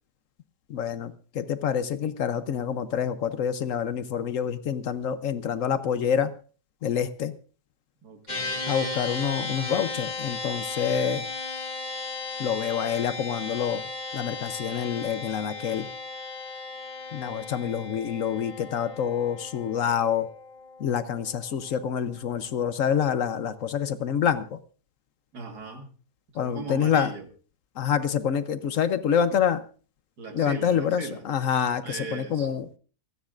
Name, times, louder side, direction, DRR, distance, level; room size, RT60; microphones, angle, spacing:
voice 1, 0.7-6.3 6.8-7.3 8.7-11.3 12.4-13.8 14.1-15.9 17.1-20.3 20.8-24.6 26.3-27.1 27.8-29.6 30.3-32.6, left 8 dB, 60° left, 12 dB, 1.0 m, -27 dB
voice 2, 8.0-8.7 25.3-25.9 26.3-27.3 30.2-31.2 31.8-32.6, right 3 dB, 85° right, 4 dB, 2.3 m, -38 dB
sound 1, 8.3-21.8, left 3 dB, 25° left, 2.5 m, -36 dB
28.5 x 9.7 x 2.5 m, 0.39 s
omnidirectional pair, 1.6 m